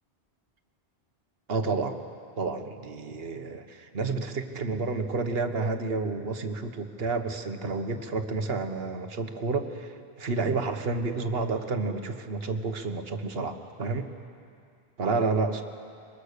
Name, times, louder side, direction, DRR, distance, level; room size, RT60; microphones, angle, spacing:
voice 1, 1.5-2.0 2.4-14.1 15.0-15.6, right 3 dB, 65° right, 6 dB, 1.5 m, -30 dB
23.5 x 22.0 x 6.7 m, 2.4 s
omnidirectional pair, 1.1 m